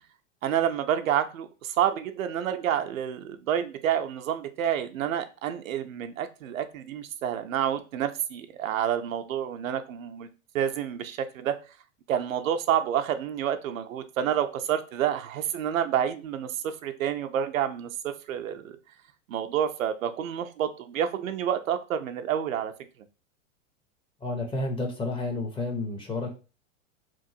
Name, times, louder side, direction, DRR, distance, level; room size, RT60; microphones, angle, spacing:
voice 1, 0.4-10.3 10.5-11.6 12.1-18.8 19.3-22.7, right 9 dB, 90° right, 8 dB, 0.5 m, -29 dB
voice 2, 24.2-26.3, left 2 dB, 15° left, 3 dB, 0.5 m, -30 dB
2.9 x 2.4 x 2.7 m, 0.33 s
hypercardioid pair, 105°, 40 cm